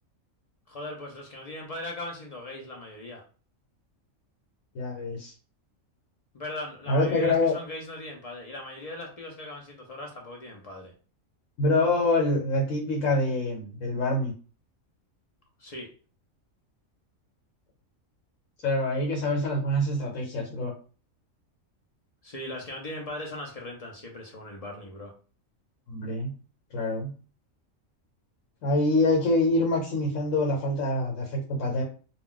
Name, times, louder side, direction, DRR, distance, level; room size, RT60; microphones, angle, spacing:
voice 1, 0.7-3.2 6.3-10.9 15.6-15.9 22.2-25.1, left 1 dB, 60° left, 0 dB, 0.4 m, -39 dB
voice 2, 4.7-5.3 6.9-7.5 11.6-14.3 18.6-20.7 25.9-26.3 26.7-27.1 28.6-31.8, left 2 dB, 85° left, 0 dB, 1.1 m, -25 dB
2.3 x 2.2 x 3.7 m, 0.38 s
omnidirectional pair, 1.4 m